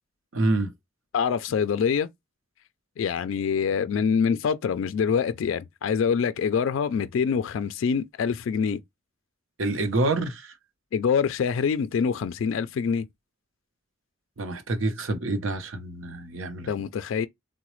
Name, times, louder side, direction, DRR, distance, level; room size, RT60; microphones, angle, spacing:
voice 1, 0.3-0.7 9.6-10.5 14.4-16.7, right 2 dB, 75° right, 0.7 m, -27 dB
voice 2, 1.1-2.1 3.0-8.8 10.9-13.1 16.7-17.3, left 6 dB, 70° left, 0.3 m, -25 dB
3.9 x 2.1 x 3.0 m
head